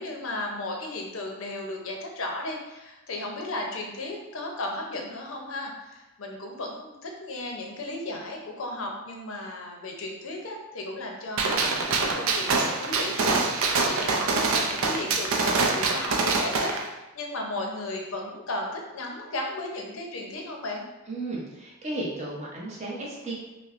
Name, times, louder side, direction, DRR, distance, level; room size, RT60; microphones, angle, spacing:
voice 1, 0.0-20.8, left 2 dB, 70° left, 1 dB, 0.6 m, -35 dB
Gunshot gunfire, 11.4-16.8, right 3 dB, 70° right, 0.4 m, -25 dB
voice 2, 21.1-23.3, right 2 dB, 30° right, -5 dB, 0.8 m, -34 dB
5.5 x 2.1 x 2.5 m, 1.0 s
head